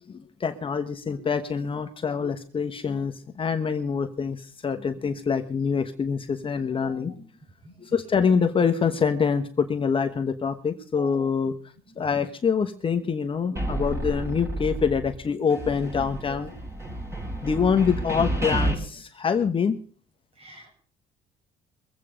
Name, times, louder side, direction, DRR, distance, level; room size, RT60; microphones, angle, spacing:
voice 1, 0.1-4.4 4.6-7.1 7.9-11.5 12.0-16.5 17.4-19.7, left 6 dB, 30° left, 7 dB, 1.2 m, -25 dB
voice 2, 10.9-11.3 11.9-12.0 16.3-16.5 16.8-17.1 20.4-20.7, right 4 dB, 35° right, 4 dB, 7.6 m, -45 dB
sound 1, 13.6-15.2 15.5-18.7, right 1 dB, 15° right, 6.8 m, -30 dB
23.5 x 8.5 x 5.1 m, 0.42 s
cardioid pair, 110°, 17 cm